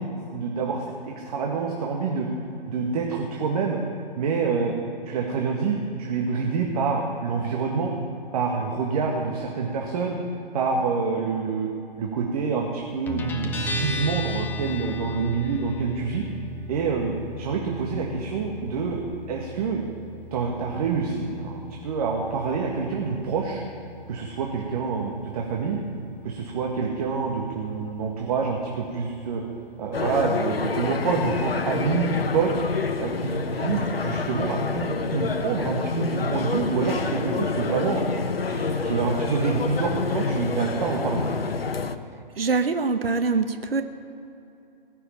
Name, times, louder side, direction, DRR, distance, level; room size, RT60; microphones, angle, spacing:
voice 1, 0.0-2.3 2.6-3.8 4.2-4.7 5.0-7.9 8.3-10.2 10.5-11.7 12.0-16.2 16.7-19.0 19.3-19.8 20.3-23.6 24.1-25.8 26.2-29.4 29.8-32.5 33.0-38.0 38.5-41.2, right 5 dB, 40° right, 0 dB, 1.8 m, -27 dB
Guitar, 13.1-30.3, left 1 dB, 5° left, 0.8 m, -37 dB
sound 1, 29.9-42.0, left 4 dB, 80° left, 1.0 m, -28 dB
voice 2, 42.4-43.8, right 4 dB, 80° right, 8 dB, 1.1 m, -24 dB
20.0 x 6.8 x 8.6 m, 2.7 s
figure-of-eight pair, 135°, 29 cm